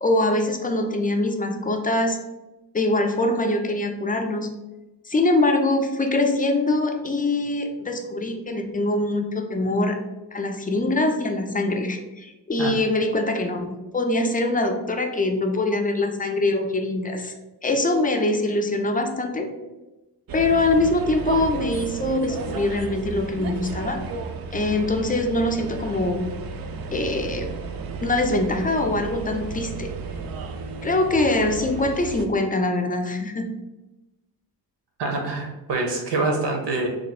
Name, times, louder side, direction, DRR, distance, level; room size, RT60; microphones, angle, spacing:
voice 1, 0.0-2.2 2.7-4.5 5.1-10.0 10.3-13.7 13.9-17.3 17.6-19.5 20.3-24.0 24.5-26.2 26.9-27.5 28.0-29.9 30.8-33.5, left 2 dB, 20° left, 4 dB, 0.4 m, -23 dB
sound 1, 20.3-32.3, right 4 dB, 55° right, 0.5 m, -33 dB
voice 2, 35.0-36.9, right 3 dB, 75° right, 1 dB, 1.0 m, -25 dB
3.3 x 2.0 x 4.0 m, 1.0 s
cardioid pair, 75°, 42 cm